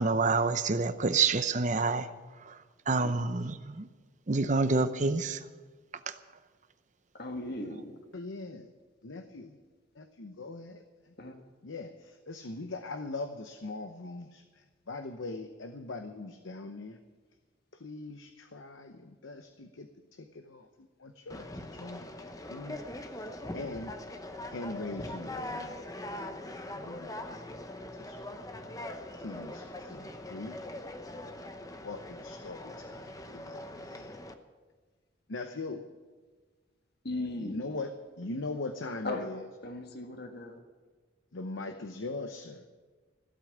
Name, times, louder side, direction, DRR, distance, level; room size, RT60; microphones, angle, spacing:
voice 1, 0.0-2.1 2.5-2.6 2.9-3.9 4.3-5.4 6.1-6.2, right 4 dB, 40° right, 0.7 m, -27 dB
voice 2, 7.1-8.0 11.2-11.4 37.0-37.7 39.0-39.3 39.6-40.6, left 2 dB, 55° left, 1.5 m, -37 dB
voice 3, 8.1-8.7 9.0-9.6 9.9-11.1 11.6-17.0 17.7-22.8 23.1-23.9 24.5-25.8 26.1-26.3 26.7-27.4 27.9-28.4 29.1-30.6 31.8-34.2 35.3-35.8 37.4-37.9 38.2-39.5 41.3-42.7, left 3 dB, 80° left, 0.9 m, -41 dB
Conversation, 21.3-34.3, left 1 dB, 20° left, 0.8 m, -42 dB
15.5 x 8.4 x 8.8 m
head